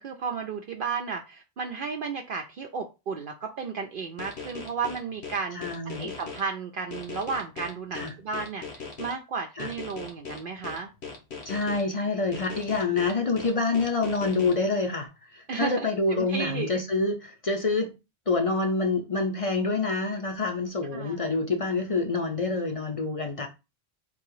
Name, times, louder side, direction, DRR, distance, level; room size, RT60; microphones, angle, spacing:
voice 1, 0.0-5.6 5.8-10.9 15.5-16.8 20.8-21.2, right 5 dB, 60° right, 0.7 m, -33 dB
sound 1, 4.2-6.4 6.9-9.1 9.6-11.8 12.3-14.5, left 5 dB, 75° left, 1.5 m, -39 dB
voice 2, 5.5-6.1 7.9-8.1 9.6-9.7 11.4-17.9 18.3-23.5, left 3 dB, 40° left, 0.6 m, -27 dB
3.9 x 2.9 x 4.6 m
omnidirectional pair, 1.1 m